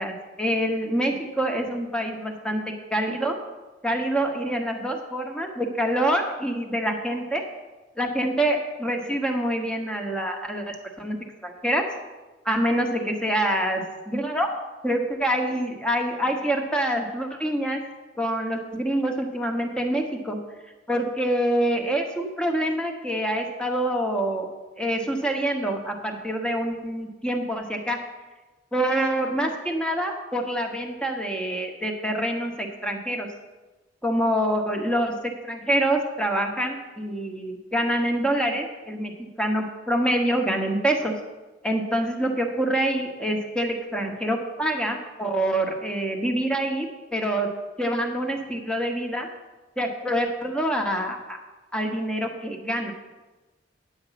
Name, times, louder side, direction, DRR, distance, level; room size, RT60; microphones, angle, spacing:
voice 1, 0.0-2.6 2.9-3.4 3.8-7.4 8.0-11.2 11.4-11.8 12.4-14.5 14.8-17.8 18.2-20.4 20.9-24.5 24.8-28.0 28.7-33.3 34.0-35.2 35.4-41.1 41.6-46.9 47.1-47.5 47.8-49.3 49.8-51.4 51.7-52.9, right 1 dB, 5° left, 3 dB, 1.2 m, -26 dB
9.6 x 8.0 x 5.8 m, 1.2 s
head